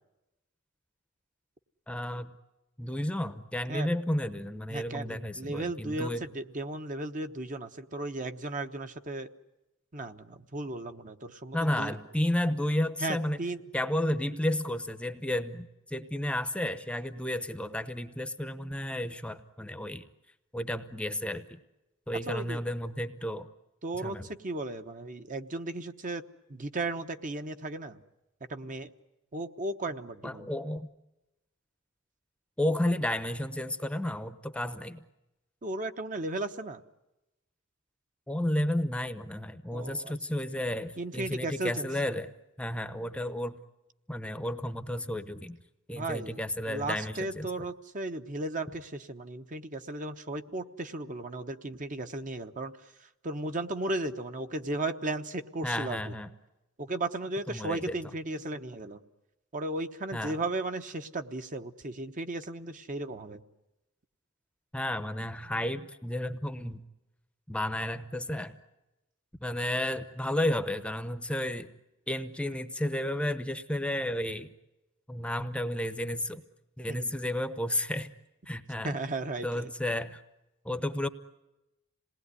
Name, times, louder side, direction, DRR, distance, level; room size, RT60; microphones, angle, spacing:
voice 1, 1.9-2.3 2.8-6.3 11.5-13.4 13.7-20.0 20.5-21.6 22.1-23.5 23.9-24.3 30.2-30.9 32.6-35.0 38.3-42.3 42.6-43.6 44.1-45.6 45.9-47.7 55.6-56.3 57.5-57.9 60.1-60.4 64.7-66.8 67.5-68.5 69.4-71.7 72.1-74.5 75.1-76.4 76.8-78.1 78.5-79.0 79.4-80.2 80.6-81.1, left 1 dB, 5° left, 10 dB, 0.8 m, -32 dB
voice 2, 4.7-9.3 9.9-11.9 13.0-13.6 22.3-22.6 23.8-26.2 26.5-28.0 28.5-28.9 29.3-30.5 35.6-36.8 39.7-40.1 41.0-42.2 45.9-46.4 46.7-52.7 53.2-56.0 56.8-59.0 59.5-63.4 76.9-77.1 78.8-79.7, right 2 dB, 40° right, 7 dB, 1.0 m, -35 dB
27.5 x 19.5 x 9.7 m, 0.99 s
head